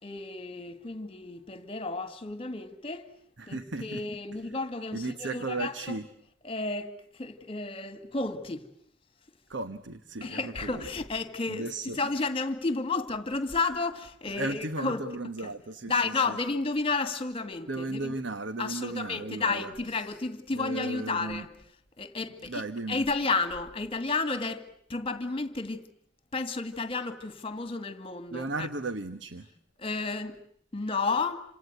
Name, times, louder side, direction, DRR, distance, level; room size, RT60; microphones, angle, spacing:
voice 1, 0.0-3.1 3.5-6.0 6.4-8.7 10.2-11.7 12.0-15.0 15.4-15.5 15.9-18.1 18.6-21.5 22.0-22.6 22.9-25.8 26.3-28.7 29.8-30.4 30.7-31.4, left 3 dB, 30° left, 2.1 m, -32 dB
voice 2, 3.4-4.0 4.9-6.1 9.5-10.8 11.5-12.0 14.3-16.4 17.7-20.2 20.5-21.5 22.4-23.0 28.3-29.5, right 2 dB, 75° right, 1.2 m, -35 dB
28.0 x 26.5 x 8.0 m
head